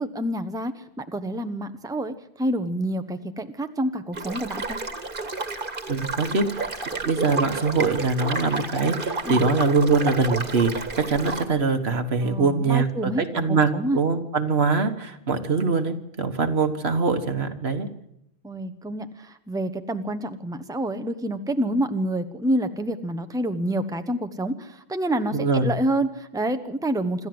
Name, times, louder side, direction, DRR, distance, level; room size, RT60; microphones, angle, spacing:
voice 1, 0.0-4.8 9.2-9.5 12.2-14.0 18.4-27.3, right 1 dB, 5° right, 8 dB, 1.0 m, -28 dB
sound 1, 4.1-11.5, right 3 dB, 55° right, 1.9 m, -30 dB
voice 2, 5.9-6.7 7.0-17.9 25.3-25.7, right 4 dB, 75° right, 7 dB, 1.8 m, -23 dB
26.5 x 13.0 x 7.8 m, 0.79 s
omnidirectional pair, 1.1 m